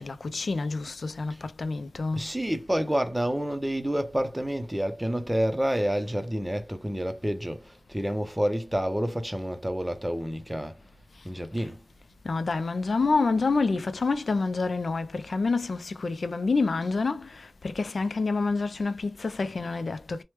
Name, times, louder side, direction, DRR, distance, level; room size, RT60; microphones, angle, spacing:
voice 1, 0.0-2.3 12.2-20.2, left 3 dB, 70° left, 0.4 m, -28 dB
voice 2, 2.1-10.8 11.2-11.8, equal, 10° right, 0.6 m, -29 dB
3.1 x 2.1 x 3.0 m
wide cardioid pair, 85°, 0 cm